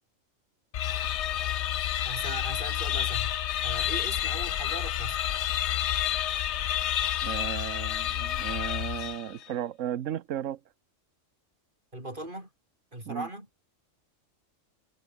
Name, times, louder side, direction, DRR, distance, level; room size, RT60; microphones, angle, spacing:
sound 1, 0.7-9.4, left 11 dB, 65° left, 0.9 m, -29 dB
voice 1, 2.0-3.4 3.6-5.3 11.9-12.5 12.9-13.5, right 1 dB, 40° right, 7.3 m, -39 dB
voice 2, 7.2-10.6 13.0-13.3, right 10 dB, 75° right, 1.2 m, -35 dB
omnidirectional pair, 1.3 m